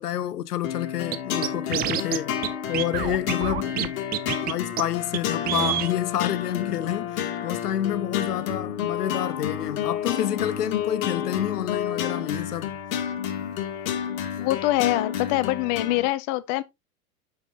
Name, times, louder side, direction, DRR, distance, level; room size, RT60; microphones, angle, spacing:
voice 1, 0.0-2.3 2.7-4.0 4.4-12.7, left 11 dB, 80° left, 0.7 m, -28 dB
sound 1, 0.6-16.1, left 9 dB, 60° left, 1.9 m, -30 dB
Scratching (performance technique), 1.1-1.2 1.4-2.2 2.4-2.5 2.7-4.5 4.8-4.9 5.1-5.2 5.5-5.9, right 12 dB, 20° right, 0.5 m, -27 dB
voice 2, 14.4-16.6, left 17 dB, 35° left, 0.6 m, -24 dB
7.9 x 5.8 x 2.7 m
hypercardioid pair, 95°, 46 cm